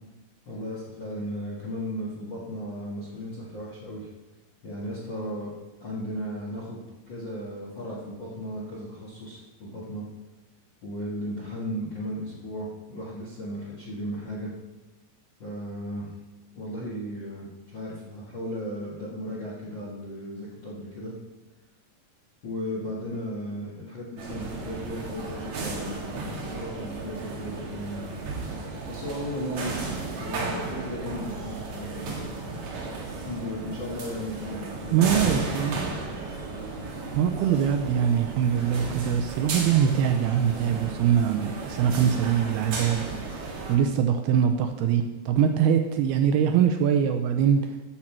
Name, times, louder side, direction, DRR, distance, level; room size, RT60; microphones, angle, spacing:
voice 1, 0.4-4.1 4.6-5.5 5.8-10.0 10.8-14.5 15.4-16.1 16.5-21.1 22.4-28.0 28.9-32.8 33.1-35.7, equal, 55° left, -5 dB, 1.3 m, -35 dB
sound 1, 24.2-43.8, right 3 dB, 55° right, 2.5 m, -34 dB
voice 2, 34.9-35.8 37.1-43.1 43.7-47.6, right 8 dB, 80° right, 6 dB, 2.4 m, -23 dB
13.0 x 7.5 x 4.5 m, 1.1 s
omnidirectional pair, 4.9 m